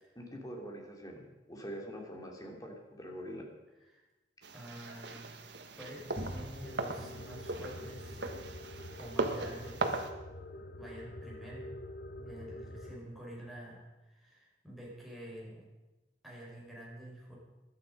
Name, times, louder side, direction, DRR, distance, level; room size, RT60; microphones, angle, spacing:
voice 1, 0.1-3.4, equal, 20° left, 1 dB, 2.7 m, -44 dB
sound 1, 4.4-10.1, right 2 dB, 70° right, 1.4 m, -38 dB
voice 2, 4.5-5.3 5.8-8.2 9.0-10.1 10.5-11.7 12.1-15.6 16.2-17.3, right 1 dB, ahead, -4 dB, 5.1 m, -48 dB
Sliding door, 5.7-10.1, equal, 30° right, 5.8 m, -49 dB
sound 2, 6.6-13.0, left 1 dB, 55° left, 0.9 m, -46 dB
17.0 x 11.5 x 5.4 m, 1.1 s
head